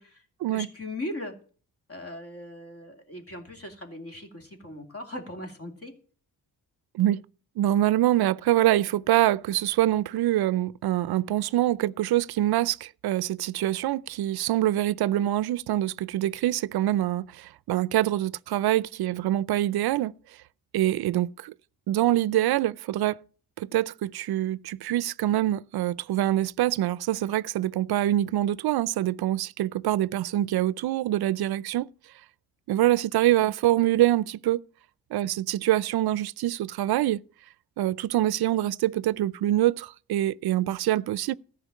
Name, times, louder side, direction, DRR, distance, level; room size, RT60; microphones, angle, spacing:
voice 1, 0.5-1.4 1.9-5.9, left 1 dB, 35° left, 2.6 m, -39 dB
voice 2, 7.6-20.1 20.7-21.5 21.9-23.2 23.6-31.9 32.7-34.6 35.1-37.2 37.8-41.3, right 14 dB, 80° right, 0.5 m, -25 dB
14.0 x 5.8 x 8.4 m
cardioid pair, 115°, 38 cm